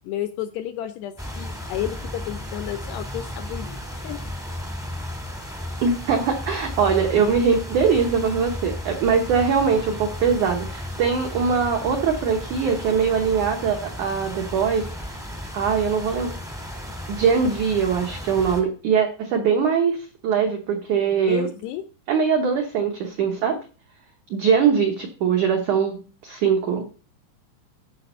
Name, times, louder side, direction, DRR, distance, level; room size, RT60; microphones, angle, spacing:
voice 1, 0.0-4.2 21.3-21.8, left 12 dB, 80° left, 10 dB, 2.5 m, -32 dB
sound 1, 1.2-18.6, left 1 dB, 5° right, 0.3 m, -34 dB
voice 2, 5.8-16.3 17.1-21.5 22.1-23.6 24.3-26.0 26.2-26.8, right 6 dB, 85° right, 3 dB, 1.7 m, -22 dB
13.5 x 5.1 x 5.5 m, 0.37 s
omnidirectional pair, 5.3 m